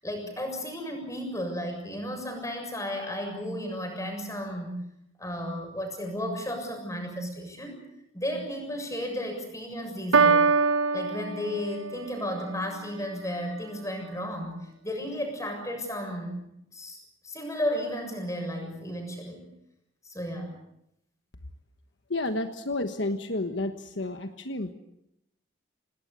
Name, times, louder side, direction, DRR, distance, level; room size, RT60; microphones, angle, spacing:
voice 1, 0.0-4.7 5.2-7.9 8.1-10.5 10.9-16.4 16.7-17.0 17.2-19.5 20.1-20.5, equal, 15° left, 3 dB, 7.2 m, -33 dB
Piano, 10.1-12.1, right 5 dB, 80° right, 1.1 m, -23 dB
voice 2, 22.1-24.7, left 2 dB, 65° left, 7 dB, 1.4 m, -31 dB
28.0 x 19.5 x 8.4 m, 0.81 s
head